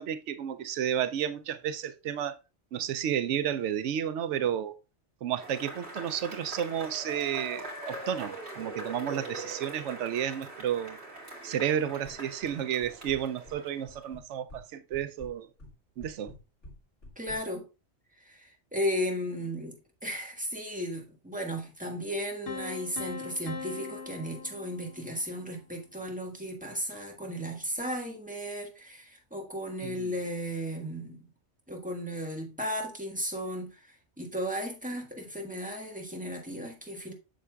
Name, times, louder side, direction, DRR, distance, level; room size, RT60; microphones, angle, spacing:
voice 1, 0.0-2.4 2.7-4.7 5.2-11.0 11.4-15.5 16.0-16.3 29.8-30.1, right 9 dB, 85° right, 0.9 m, -32 dB
Cheering / Applause / Crowd, 5.4-14.0, right 2 dB, 65° right, 2.8 m, -42 dB
sound 1, 12.0-12.5 12.8-13.6 13.9-14.6 14.9-17.4, left 1 dB, 90° left, 2.3 m, -48 dB
voice 2, 17.2-17.6 18.2-31.3 31.7-37.1, equal, 5° right, 1.4 m, -35 dB
Piano, 22.5-25.4, left 4 dB, 65° left, 1.1 m, -41 dB
7.7 x 6.7 x 2.3 m
omnidirectional pair, 1.2 m